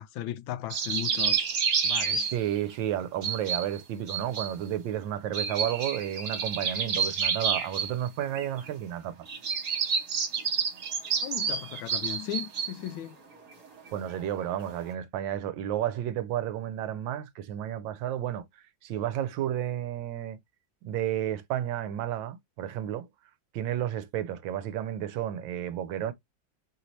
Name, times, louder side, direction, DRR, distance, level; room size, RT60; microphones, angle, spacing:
voice 1, 0.0-1.5 1.8-2.3 11.2-13.2, left 12 dB, 90° left, 1.4 m, -36 dB
sound 1, 0.7-2.7 3.2-3.8 4.1-4.5 5.3-7.9 8.2-8.7 9.3-12.9 13.5-13.6 13.9-14.9, right 6 dB, 60° right, 1.6 m, -29 dB
voice 2, 2.3-9.1 13.9-18.4 18.8-20.4 20.8-23.1 23.5-26.1, right 11 dB, 80° right, 1.3 m, -32 dB
4.7 x 2.7 x 3.0 m
omnidirectional pair, 2.1 m